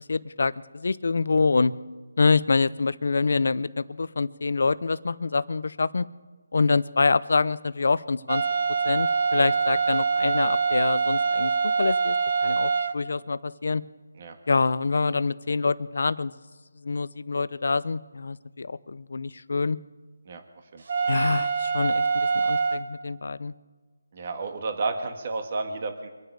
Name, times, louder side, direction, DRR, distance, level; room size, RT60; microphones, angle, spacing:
voice 1, 0.0-1.7 2.2-6.1 6.5-8.4 8.8-11.5 11.8-12.2 12.4-13.8 14.5-16.3 16.8-19.8 21.1-23.5, left 4 dB, 65° left, 16 dB, 0.7 m, -26 dB
sound 1, 8.3-12.9 20.9-22.8, right 5 dB, 55° right, 1.6 m, -24 dB
voice 2, 24.1-26.1, right 3 dB, 35° right, 6 dB, 1.6 m, -31 dB
25.5 x 9.4 x 4.8 m, 1.4 s
figure-of-eight pair, 165°, 0 cm